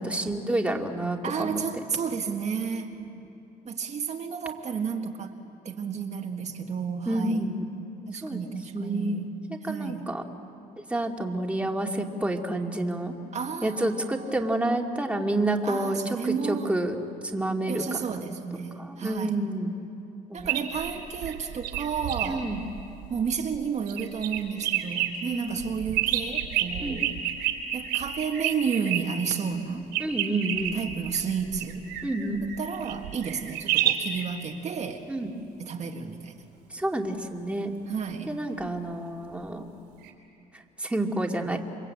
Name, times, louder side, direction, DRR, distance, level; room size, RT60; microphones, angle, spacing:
voice 1, 0.0-1.6 7.1-7.5 8.2-8.4 8.7-9.3 9.6-10.2 10.8-13.1 13.6-17.0 17.3-18.2 18.7-19.7 20.3-20.5 22.3-22.6 25.2-25.6 26.8-27.0 30.0-30.8 32.0-32.4 35.1-35.3 36.7-37.7 38.3-39.6 40.8-41.6, right 1 dB, 5° right, 2 dB, 2.5 m, -29 dB
voice 2, 1.2-2.9 3.6-5.3 5.7-7.5 8.1-9.3 9.6-10.2 13.3-14.7 15.6-16.8 17.7-19.5 20.3-22.5 23.1-27.1 27.7-29.9 30.7-31.9 32.4-35.1 35.6-36.4 37.9-38.3, right 6 dB, 45° right, 3 dB, 1.8 m, -32 dB
sound 1, 20.4-23.6 23.9-25.1 25.6-29.0 29.9-34.2 40.0-40.1, right 12 dB, 90° right, 3.7 m, -29 dB
28.0 x 24.0 x 8.7 m, 2.9 s
cardioid pair, 100°, 16 cm